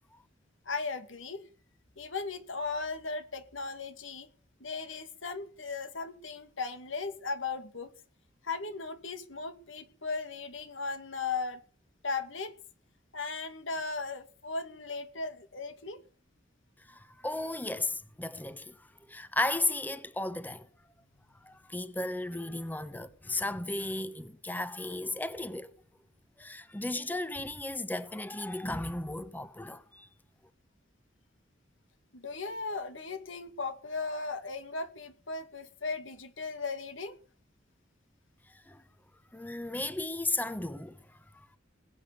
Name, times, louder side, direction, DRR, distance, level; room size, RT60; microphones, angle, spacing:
voice 1, 0.7-1.4 2.0-4.3 4.6-7.9 8.4-11.6 12.0-12.6 13.1-16.0 32.1-37.2, left 4 dB, 85° left, 2.4 m, -37 dB
voice 2, 16.9-20.7 21.4-25.7 26.4-30.1 38.5-38.8 39.3-41.6, left 2 dB, 10° left, 1.0 m, -35 dB
21.0 x 8.7 x 7.0 m
head